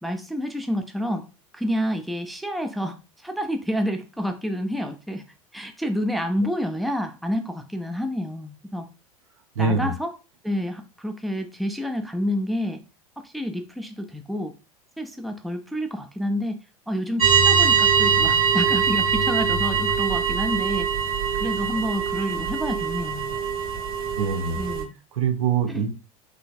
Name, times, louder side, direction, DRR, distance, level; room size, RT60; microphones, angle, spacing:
voice 1, 0.0-1.3 1.5-5.2 5.5-8.9 9.6-10.1 10.4-12.8 13.2-14.5 15.0-16.6 16.9-20.9 21.3-23.4 24.6-24.9 25.7-25.8, equal, ahead, 0.4 m, -29 dB
voice 2, 9.5-9.9 24.2-24.7 25.1-25.9, right 5 dB, 65° right, 0.8 m, -24 dB
sound 1, 17.2-24.8, right 6 dB, 80° right, 1.5 m, -22 dB
3.8 x 3.2 x 2.5 m
figure-of-eight pair, 80°, 18 cm